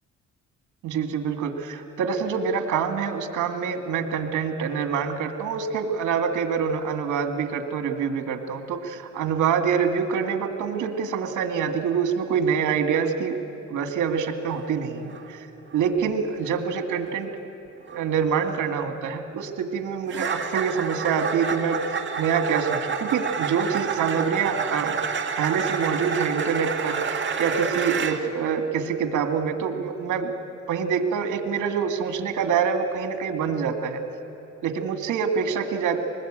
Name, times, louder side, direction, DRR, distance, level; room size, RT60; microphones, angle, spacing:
voice 1, 0.8-13.4 13.7-15.5 15.7-17.3 17.9-24.9 25.4-30.3 30.7-34.0 34.6-36.0, right 6 dB, 80° right, 7 dB, 2.0 m, -26 dB
sound 1, 14.4-14.6 15.0-15.3 15.7-16.0 16.4-16.6 17.0-17.2 17.9-18.0 18.4-18.6 20.1-28.2, right 6 dB, 40° right, 1.8 m, -29 dB
24.5 x 20.0 x 8.8 m, 2.8 s
cardioid pair, 90°, 30 cm